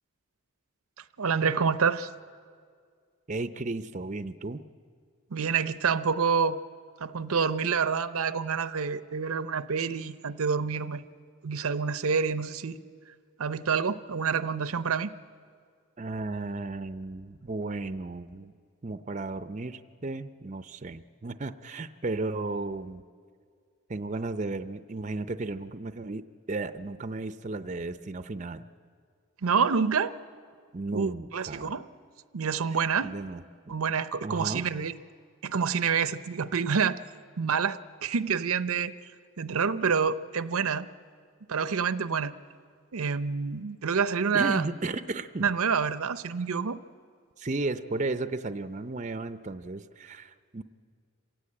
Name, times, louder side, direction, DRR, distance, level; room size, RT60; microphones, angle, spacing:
voice 1, 1.0-2.1 5.3-6.6 7.0-11.0 11.4-12.8 13.4-15.1 29.4-30.1 30.9-31.9 32.3-33.2 33.7-35.0 35.4-37.0 37.4-38.9 39.4-40.9 41.5-42.3 42.9-44.6 45.4-46.8, right 6 dB, 85° right, 14 dB, 0.7 m, -27 dB
voice 2, 3.3-4.6 16.0-18.5 18.8-23.0 23.9-28.6 30.7-31.7 33.0-33.4 34.2-34.7 44.3-45.5 47.4-50.6, right 2 dB, 35° right, 11 dB, 0.5 m, -34 dB
26.5 x 16.5 x 8.7 m, 2.1 s
head